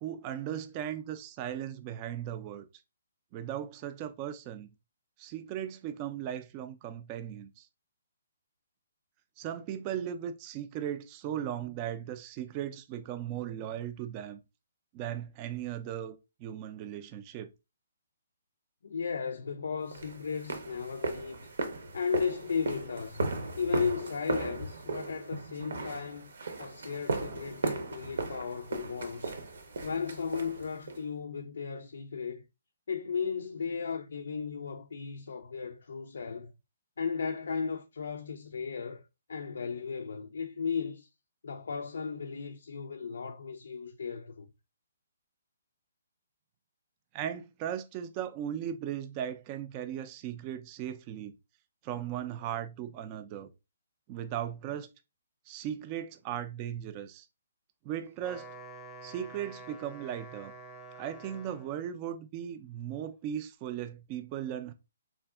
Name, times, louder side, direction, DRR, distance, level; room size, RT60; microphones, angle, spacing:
voice 1, 0.0-2.7 3.3-4.7 5.2-7.7 9.4-14.4 14.9-17.5 47.1-51.3 51.8-53.5 54.1-54.9 55.5-57.3 57.8-58.5 59.0-60.5 61.0-64.7, right 10 dB, 30° right, 0.3 m, -37 dB
voice 2, 18.8-21.5 21.9-23.3 23.6-26.3 26.6-29.4 29.8-32.5 32.9-36.5 37.0-41.1 41.4-44.5, left 6 dB, 75° left, 0.3 m, -35 dB
sound 1, 19.9-31.0, right 3 dB, 75° right, 0.7 m, -36 dB
Wind instrument woodwind instrument, 58.1-61.9, right 2 dB, 5° left, 0.7 m, -48 dB
3.4 x 2.5 x 2.3 m
hypercardioid pair, 140°, 0 cm